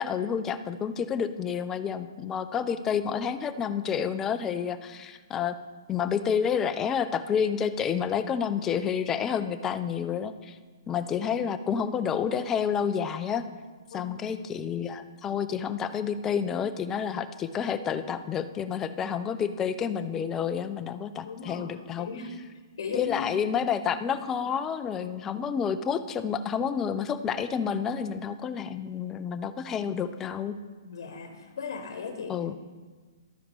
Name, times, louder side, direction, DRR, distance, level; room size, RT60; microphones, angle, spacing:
voice 1, 0.0-5.6 5.9-10.6 10.9-13.4 13.9-22.1 22.9-30.5 32.3-32.6, left 7 dB, 15° left, 10 dB, 0.4 m, -29 dB
voice 2, 21.2-22.3 22.8-23.6 24.0-24.2 24.4-24.5 30.9-32.3, left 5 dB, 65° left, 6 dB, 1.0 m, -37 dB
12.0 x 4.8 x 5.2 m, 1.4 s
hypercardioid pair, 150°, 2 cm